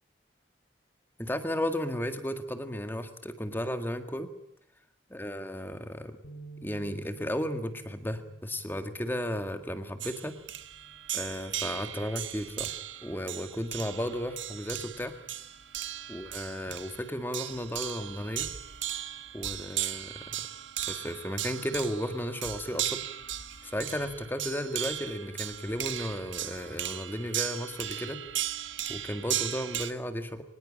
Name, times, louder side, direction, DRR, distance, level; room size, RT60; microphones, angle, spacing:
voice 1, 1.2-4.3 5.1-6.2 6.6-10.4 11.1-15.1 16.1-18.5 19.3-20.2 20.9-23.0 23.6-28.2 28.9-30.4, equal, 10° left, 8 dB, 1.8 m, -34 dB
sound 1, 6.2-12.5, right 3 dB, 65° left, 2.2 m, -53 dB
sound 2, 10.0-29.9, right 12 dB, 90° right, 1.6 m, -37 dB
24.5 x 20.0 x 8.8 m, 0.71 s
head